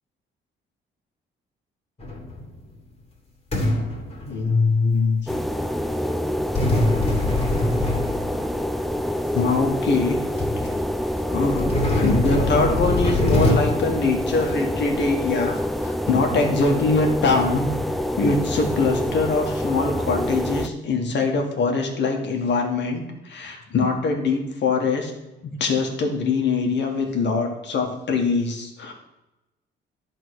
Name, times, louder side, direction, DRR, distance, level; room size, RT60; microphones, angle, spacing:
sound 1, 2.0-2.6 3.5-4.8 6.5-8.7 9.5-9.6 10.1-10.2 10.4-10.7 11.5-13.5, left 1 dB, 30° left, 2.4 m, -23 dB
voice 1, 4.3-5.2 9.3-10.2 10.6-10.7 11.3-25.1 25.4-28.9, left 4 dB, 65° left, 3 dB, 1.8 m, -23 dB
sound 2, 5.3-20.7, left 1 dB, ahead, 0.6 m, -26 dB
11.0 x 4.1 x 6.4 m, 0.99 s
cardioid pair, 90°, 20 cm